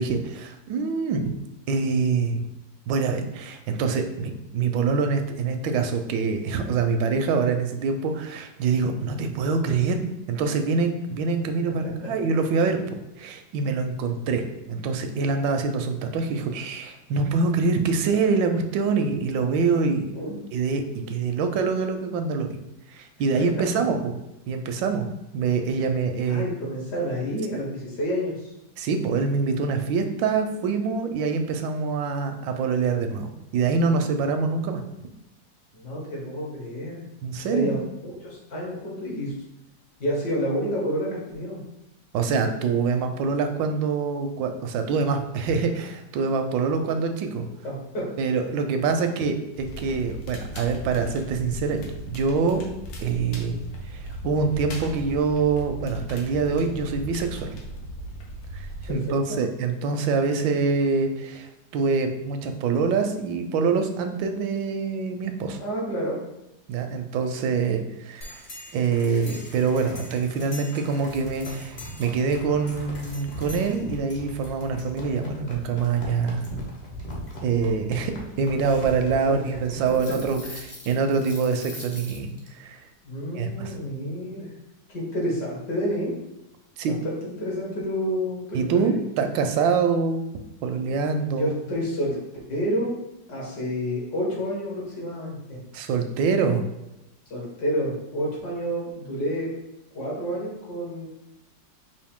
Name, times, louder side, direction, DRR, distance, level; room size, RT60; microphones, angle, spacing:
voice 1, 0.0-1.3 1.7-2.5 2.9-10.0 10.3-12.8 13.2-20.1 20.5-22.6 22.9-24.2 24.5-25.1 25.3-26.5 27.5-27.6 28.8-34.8 37.2-37.7 42.1-47.5 48.2-52.6 53.0-53.6 53.9-57.5 58.5-65.6 66.7-68.4 68.7-76.4 77.4-78.1 78.4-82.3 82.6-82.8 83.4-83.7 86.8-86.9 88.5-90.2 90.6-91.5 95.7-96.6, right 5 dB, 80° right, 6 dB, 1.3 m, -25 dB
voice 2, 26.3-28.4 35.7-37.1 37.5-39.3 40.0-41.6 47.6-48.1 58.9-59.4 65.6-66.2 79.2-79.3 80.1-80.2 83.0-84.6 84.9-86.2 87.0-88.9 91.4-92.2 92.5-92.9 93.3-95.6 97.3-99.5 99.9-101.1, equal, 65° left, -4 dB, 1.9 m, -29 dB
Crackle, 49.5-58.9, right 1 dB, 80° left, 1.6 m, -37 dB
sound 1, 68.2-82.5, equal, 40° left, 0.6 m, -40 dB
5.5 x 2.6 x 3.5 m, 0.91 s
omnidirectional pair, 2.0 m